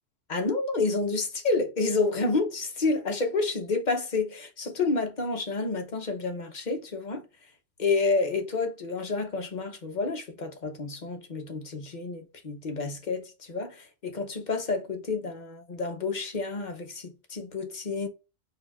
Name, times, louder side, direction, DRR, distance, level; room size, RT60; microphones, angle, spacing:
voice 1, 0.3-7.3 7.8-18.1, left 3 dB, 40° left, 1.0 m, -29 dB
4.3 x 2.8 x 4.3 m
omnidirectional pair, 1.3 m